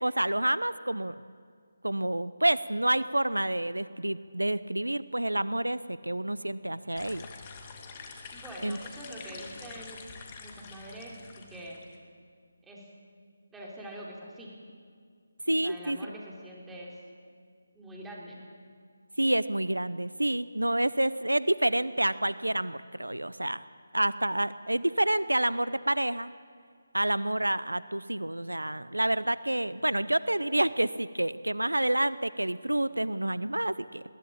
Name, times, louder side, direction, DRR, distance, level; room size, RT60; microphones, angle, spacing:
voice 1, 0.0-1.1 1.8-7.3 8.6-8.8 15.5-16.0 19.2-23.6 23.9-26.3 26.9-34.0, right 1 dB, 85° right, 16 dB, 0.6 m, -28 dB
sound 1, 6.9-12.0, left 5 dB, 25° left, 2.2 m, -46 dB
voice 2, 8.3-10.0 10.4-11.8 12.6-13.0 13.5-14.6 15.5-16.9 17.7-18.4, right 1 dB, 5° right, -3 dB, 3.5 m, -44 dB
21.5 x 16.5 x 8.8 m, 2.1 s
figure-of-eight pair, 155°, 0 cm